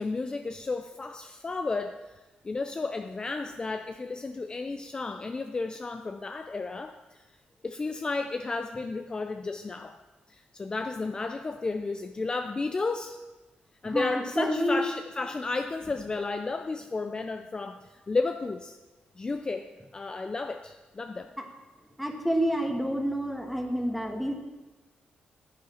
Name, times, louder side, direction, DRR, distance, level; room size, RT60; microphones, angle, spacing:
voice 1, 0.0-2.2 2.4-7.2 7.6-10.0 10.3-13.2 13.8-18.8 19.2-21.3, left 3 dB, 25° left, 7 dB, 0.4 m, -33 dB
voice 2, 13.8-14.8 21.4-21.5 22.0-24.3, equal, ahead, 3 dB, 1.2 m, -28 dB
9.9 x 8.5 x 4.4 m, 1.2 s
cardioid pair, 110°, 3 cm